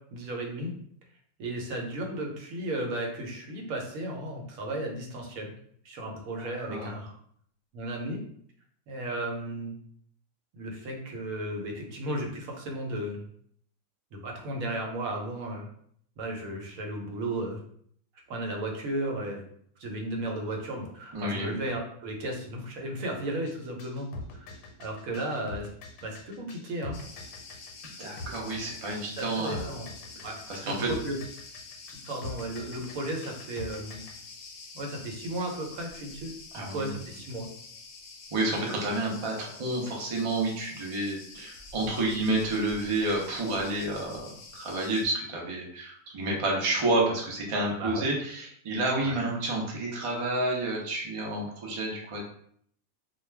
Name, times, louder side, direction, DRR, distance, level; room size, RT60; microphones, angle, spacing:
voice 1, 0.1-0.7 1.4-5.5 5.8-7.1 7.7-8.2 8.9-9.8 10.5-13.2 14.1-15.7 16.2-17.6 18.3-19.4 19.8-24.1 24.3-24.5 24.8-25.7 26.0-27.0 29.2-29.8 30.2-30.4 30.6-31.2 31.9-34.0 34.7-37.5 47.8-48.1 49.0-49.2, right 1 dB, 80° right, 1 dB, 1.1 m, -34 dB
voice 2, 6.4-6.9 21.1-21.6 28.0-29.7 30.5-30.9 36.5-37.0 38.3-52.2, right 2 dB, 45° right, -2 dB, 0.4 m, -30 dB
sound 1, 23.5-34.2, left 3 dB, 85° left, 1.0 m, -44 dB
Cricket, 26.9-45.1, left 4 dB, 65° left, 0.8 m, -47 dB
2.3 x 2.2 x 3.2 m, 0.65 s
omnidirectional pair, 1.4 m